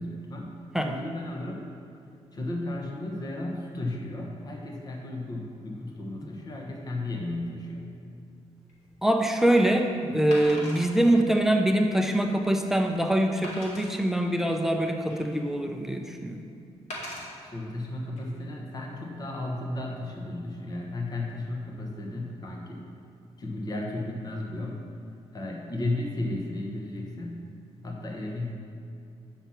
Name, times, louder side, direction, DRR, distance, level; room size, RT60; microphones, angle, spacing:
voice 1, 0.0-0.6 0.9-1.7 2.3-7.9 17.4-22.8 23.4-24.8 25.3-27.4 27.8-28.5, left 2 dB, 35° left, 0 dB, 1.3 m, -34 dB
Wood, 8.7-8.9 10.3-10.9 11.5-11.6 12.1-12.2 13.4-13.9 14.7-15.5 16.9-17.3 18.0-18.2, left 1 dB, 80° left, 2.2 m, -39 dB
voice 2, 9.0-16.4, right 1 dB, 5° right, 4 dB, 0.6 m, -24 dB
8.0 x 5.8 x 5.9 m, 2.5 s
cardioid pair, 105°, 12 cm